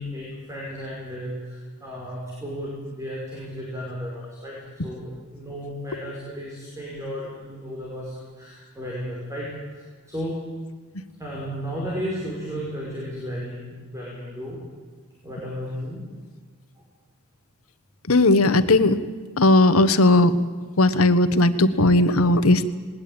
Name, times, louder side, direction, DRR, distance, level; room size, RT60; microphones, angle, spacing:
voice 1, 0.0-10.4 11.2-14.6 15.2-16.0 16.8-16.9, equal, 15° right, -4 dB, 5.4 m, -34 dB
voice 2, 18.1-19.0 19.4-20.3 20.8-22.7, left 2 dB, 75° left, 11 dB, 1.2 m, -17 dB
20.0 x 19.0 x 8.8 m, 1.5 s
head